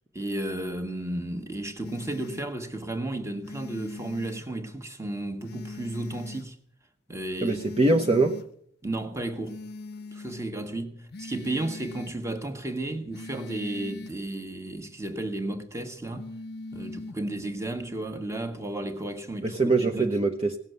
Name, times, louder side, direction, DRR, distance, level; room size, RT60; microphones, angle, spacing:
voice 1, 0.1-6.6 7.1-7.6 8.8-9.6 10.1-16.3 16.7-20.1, right 1 dB, 15° right, 1.5 m, -33 dB
sound 1, 1.8-2.5 3.4-4.5 5.4-6.5 7.4-8.5 9.4-10.5 11.1-12.2 13.1-14.2 16.1-17.2, left 3 dB, 60° left, 0.7 m, -41 dB
voice 2, 7.4-8.4 19.4-20.6, right 2 dB, 35° right, 1.0 m, -23 dB
18.0 x 7.4 x 9.2 m
head